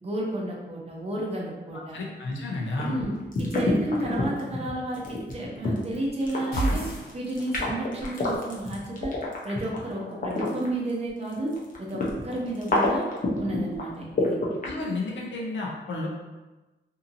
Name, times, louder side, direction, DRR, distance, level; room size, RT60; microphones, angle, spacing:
voice 1, 0.0-2.0 2.8-6.9 7.1-9.1 9.4-13.1 13.4-14.4, right 1 dB, 35° right, -3 dB, 0.6 m, -31 dB
voice 2, 1.9-3.0 14.6-16.1, left 2 dB, 85° left, -2 dB, 0.7 m, -31 dB
sound 1, 2.7-10.9 11.3-14.7, left 3 dB, 45° left, 0.6 m, -29 dB
sound 2, 6.5-7.8, right 2 dB, 65° left, 1.0 m, -29 dB
2.7 x 2.7 x 2.5 m, 1.1 s
wide cardioid pair, 140°, 19 cm